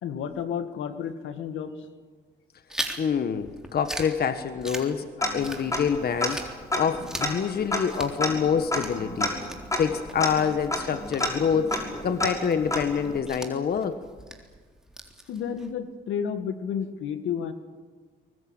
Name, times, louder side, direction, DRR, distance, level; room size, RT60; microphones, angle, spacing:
voice 1, 0.0-1.8 15.3-17.5, left 7 dB, 80° left, 9 dB, 2.0 m, -31 dB
Chewing mastication, 2.7-6.0 6.3-15.7, right 1 dB, 5° right, 3.8 m, -40 dB
voice 2, 3.0-6.4 6.7-9.3 9.8-11.7 12.0-14.0, left 7 dB, 50° left, 10 dB, 1.4 m, -26 dB
Tick-tock, 5.2-6.0 6.2-6.3 6.7-13.2, left 1 dB, 15° left, 6.0 m, -30 dB
23.0 x 21.0 x 9.0 m, 1.5 s
cardioid pair, 90°, 20 cm